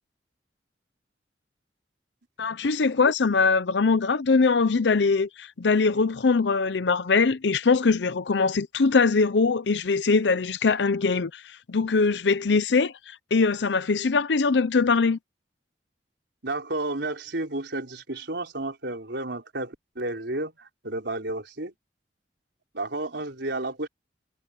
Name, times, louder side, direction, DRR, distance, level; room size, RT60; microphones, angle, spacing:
voice 1, 2.4-15.2, left 4 dB, 80° left, 0.6 m, -22 dB
voice 2, 16.4-21.7 22.7-23.9, right 2 dB, 75° right, 4.2 m, -32 dB
head